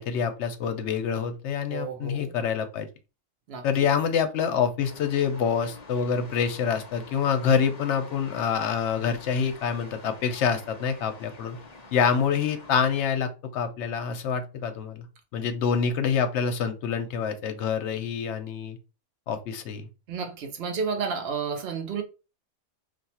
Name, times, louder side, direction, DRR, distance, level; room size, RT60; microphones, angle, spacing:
voice 1, 0.0-2.9 3.6-11.6 11.9-15.1 15.3-18.8 19.3-19.9, left 7 dB, 65° left, 0.9 m, -26 dB
voice 2, 1.7-2.3 3.5-3.9 20.1-22.0, right 5 dB, 60° right, 0.9 m, -31 dB
sound 1, 4.8-13.0, left 3 dB, 40° left, 0.7 m, -47 dB
2.6 x 2.3 x 4.1 m
omnidirectional pair, 1.3 m